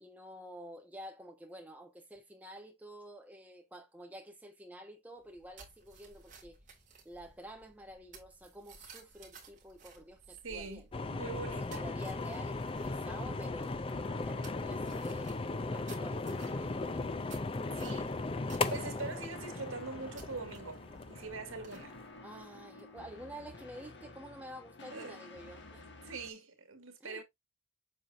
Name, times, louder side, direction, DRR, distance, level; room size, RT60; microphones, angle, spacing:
voice 1, 0.0-6.6 7.0-10.9 11.5-13.8 14.2-15.4 15.7-17.2 17.7-18.3 22.2-25.9 27.0-27.2, equal, 10° right, 1.3 m, -50 dB
sound 1, 5.2-23.1, right 4 dB, 35° right, 2.2 m, -58 dB
voice 2, 10.4-11.8 17.8-18.1 18.7-21.9 24.9-25.2 25.8-27.2, right 3 dB, 85° right, 1.8 m, -43 dB
sound 2, 10.9-22.0, left 3 dB, 25° left, 0.4 m, -37 dB
sound 3, 12.5-26.3, left 2 dB, 55° left, 1.5 m, -52 dB
7.5 x 5.6 x 2.6 m
head